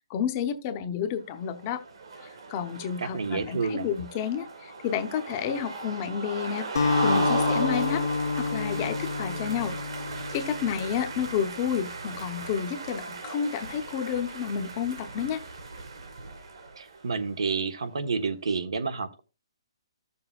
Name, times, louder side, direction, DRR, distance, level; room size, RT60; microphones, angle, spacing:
voice 1, 0.1-1.8 2.2-6.7 7.0-8.0 8.3-9.8 10.3-15.4, left 8 dB, 25° left, 0.7 m, -30 dB
sound 1, 1.4-17.1, right 3 dB, 70° right, 2.4 m, -36 dB
voice 2, 3.0-3.9 16.8-19.2, right 4 dB, 85° right, 1.2 m, -29 dB
Acoustic guitar, 6.8-11.2, left 4 dB, 60° left, 0.9 m, -28 dB
13.5 x 6.9 x 2.4 m
hypercardioid pair, 170°, 3 cm